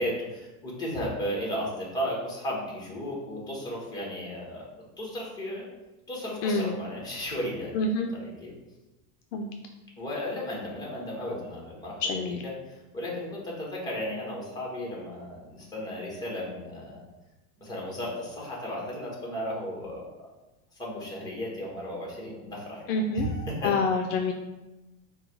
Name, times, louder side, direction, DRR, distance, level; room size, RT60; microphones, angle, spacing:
voice 1, 0.0-4.7 5.0-5.6 6.1-7.7 8.1-8.5 10.0-12.2 12.7-17.0 17.6-20.1 20.8-23.7, equal, 10° left, -3 dB, 1.2 m, -34 dB
voice 2, 6.4-6.8 7.7-8.1 9.3-9.5 12.0-12.4 22.9-23.3 23.6-24.3, left 3 dB, 60° left, 4 dB, 0.5 m, -27 dB
4.6 x 2.3 x 4.7 m, 1.1 s
supercardioid pair, 140°, 45 cm